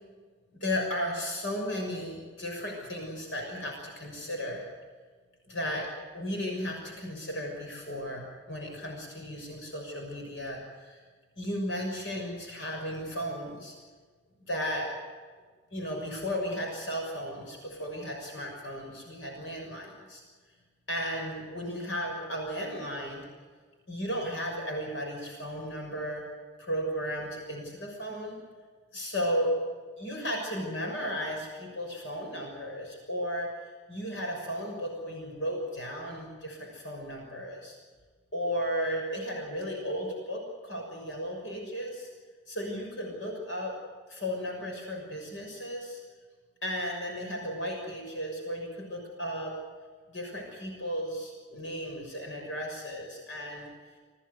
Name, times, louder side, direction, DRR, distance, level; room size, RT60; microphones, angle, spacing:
voice 1, 0.6-4.6 5.5-5.9 6.1-11.0 11.4-13.7 14.5-14.9 15.7-20.2 20.9-23.2 23.9-26.2 26.6-28.4 28.9-29.5 30.0-33.5 33.9-37.8 38.3-42.1 42.5-43.7 44.1-46.0 46.6-49.5 50.1-53.7, equal, 70° left, 1 dB, 6.5 m, -35 dB
27.0 x 18.0 x 8.1 m, 1.5 s
head